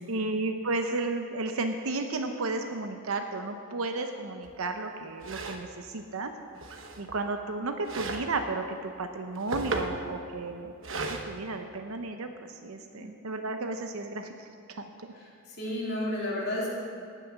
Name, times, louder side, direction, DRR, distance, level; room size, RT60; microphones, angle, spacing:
voice 1, 0.0-6.3 7.0-14.3 14.7-14.8, right 3 dB, 75° right, 6 dB, 0.7 m, -33 dB
sound 1, 4.4-4.5 5.2-5.7 6.6-7.2 7.8-8.3 9.2-10.0 10.8-11.2, right 3 dB, 60° right, 1.1 m, -34 dB
voice 2, 15.1-16.7, left 1 dB, 45° left, -5 dB, 3.3 m, -33 dB
18.5 x 7.0 x 6.1 m, 2.6 s
head